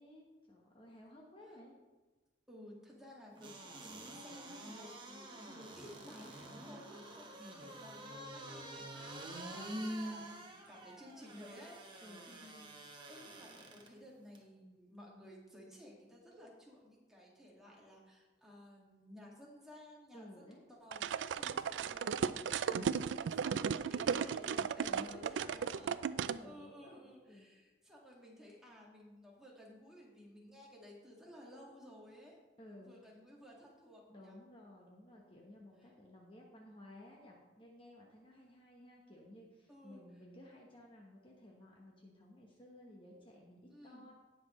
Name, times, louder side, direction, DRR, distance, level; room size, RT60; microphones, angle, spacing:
voice 1, 0.0-1.7 7.4-7.7 12.0-12.4 20.1-20.6 22.7-23.1 24.1-27.5 32.6-32.9 34.1-44.1, left 1 dB, 30° left, -1 dB, 1.1 m, -56 dB
voice 2, 2.5-9.6 10.0-22.9 23.2-24.4 24.8-26.1 26.4-32.4 32.7-34.4 39.7-40.0 43.7-44.0, equal, 5° right, -4 dB, 2.0 m, -56 dB
sound 1, 3.4-13.9 14.4-14.5, right 1 dB, 25° right, 1.2 m, -47 dB
sound 2, 20.9-26.4, right 7 dB, 85° right, 0.3 m, -35 dB
18.0 x 6.0 x 3.1 m, 1.2 s
head